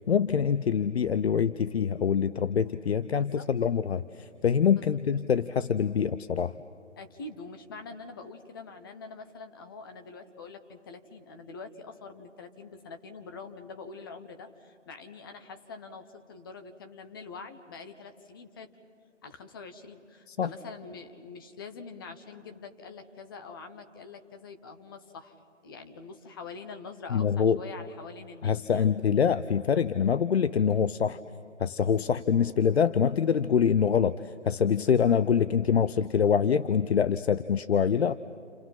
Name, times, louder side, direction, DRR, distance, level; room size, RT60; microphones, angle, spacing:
voice 1, 0.1-6.5 20.3-20.5 27.1-27.6 28.4-31.2 31.6-38.2, left 7 dB, 55° left, 14 dB, 0.6 m, -25 dB
voice 2, 3.1-3.5 4.7-4.9 7.0-18.7 19.2-25.3 25.6-28.8, left 4 dB, 20° left, 7 dB, 0.8 m, -45 dB
29.5 x 28.0 x 5.8 m, 2.4 s
figure-of-eight pair, 155°, 37 cm